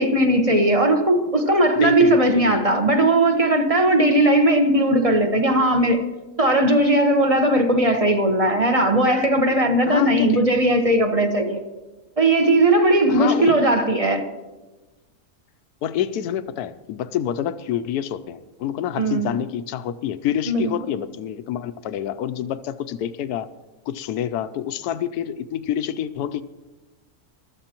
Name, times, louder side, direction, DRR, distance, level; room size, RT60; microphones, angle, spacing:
voice 1, 0.0-6.0 6.4-11.6 12.2-14.2 18.9-19.4 20.5-20.7, right 1 dB, 25° right, 1.1 m, -18 dB
voice 2, 1.8-2.7 9.9-10.4 13.1-13.6 15.8-23.5 23.9-26.4, left 10 dB, 85° left, 1.1 m, -27 dB
22.0 x 13.5 x 3.0 m
omnidirectional pair, 1.6 m